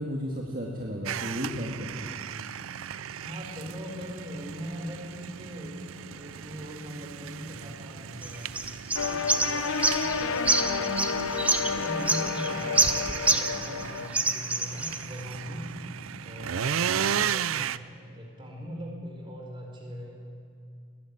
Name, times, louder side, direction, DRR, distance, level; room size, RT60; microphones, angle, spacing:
voice 1, 0.0-2.1, equal, 40° right, -2 dB, 1.9 m, -33 dB
sound 1, 1.1-17.8, right 8 dB, 80° right, 0.5 m, -36 dB
voice 2, 3.2-8.6 9.0-10.8 11.7-15.7 16.2-20.2, equal, 25° right, -1 dB, 4.9 m, -40 dB
sound 2, 8.2-13.8 14.1-15.0, right 2 dB, 5° right, 0.7 m, -27 dB
sound 3, 9.0-14.1, left 5 dB, 80° left, 0.9 m, -30 dB
20.0 x 16.0 x 8.6 m, 2.3 s
head